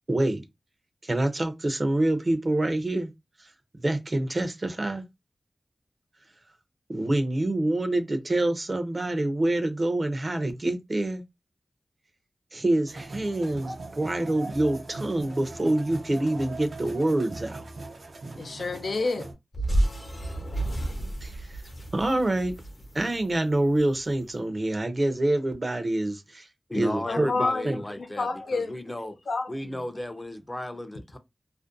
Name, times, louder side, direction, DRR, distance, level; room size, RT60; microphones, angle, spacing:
voice 1, 0.1-0.4 1.0-3.1 3.4-3.5 3.7-5.0 6.9-11.2 12.5-17.6 21.2-21.6 21.9-22.5 22.9-26.5 26.7-27.3 27.6-27.8, right 1 dB, 40° right, 0.5 m, -26 dB
sound 1, 12.9-19.3, right 2 dB, 85° right, 0.6 m, -40 dB
voice 2, 18.4-19.3 27.1-28.8 29.0-29.9, left 3 dB, 90° left, 0.4 m, -30 dB
sound 2, 19.5-23.9, right 1 dB, 60° left, 0.8 m, -30 dB
voice 3, 26.7-29.2 29.5-31.2, left 1 dB, 20° left, 0.5 m, -34 dB
2.5 x 2.1 x 2.5 m
wide cardioid pair, 80°, 0 cm